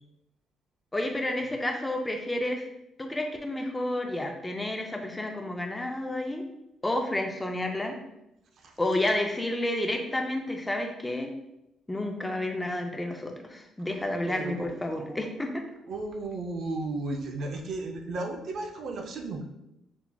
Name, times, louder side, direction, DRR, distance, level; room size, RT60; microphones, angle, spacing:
voice 1, 0.9-2.6 3.0-6.4 6.8-8.0 8.8-11.3 11.9-15.6, left 1 dB, 10° left, 3 dB, 0.4 m, -30 dB
voice 2, 14.3-15.0 15.9-19.4, right 2 dB, 60° right, 2 dB, 0.5 m, -34 dB
5.9 x 2.8 x 2.2 m, 0.86 s
cardioid pair, 125°, 0 cm